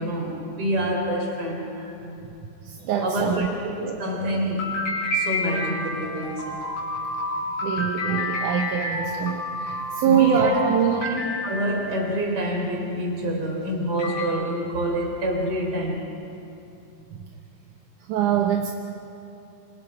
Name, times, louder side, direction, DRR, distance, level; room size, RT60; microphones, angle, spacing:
voice 1, 0.0-2.2 3.0-3.5 4.0-4.8 5.1-6.6 10.0-10.6 11.0-16.1, right 1 dB, 40° right, 0 dB, 4.5 m, -27 dB
voice 2, 2.6-3.4 3.8-4.0 7.6-11.1 18.1-18.7, right 8 dB, 75° right, 2 dB, 2.5 m, -23 dB
sound 1, 4.6-12.0 13.4-13.5 14.0-14.3, left 1 dB, 50° left, 6.9 m, -29 dB
28.0 x 26.5 x 4.9 m, 2.8 s
omnidirectional pair, 3.7 m